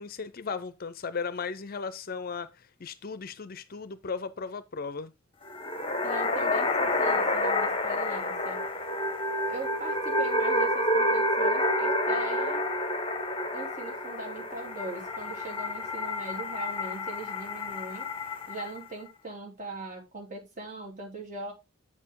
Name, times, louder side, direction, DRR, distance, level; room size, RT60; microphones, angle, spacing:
voice 1, 0.0-5.1, left 5 dB, 45° left, 0.5 m, -36 dB
sound 1, 5.5-18.8, left 1 dB, 25° left, 0.9 m, -29 dB
voice 2, 6.0-8.6 9.5-12.6 13.5-18.1 18.5-21.5, right 3 dB, 35° right, 3.1 m, -40 dB
8.5 x 6.6 x 3.6 m
head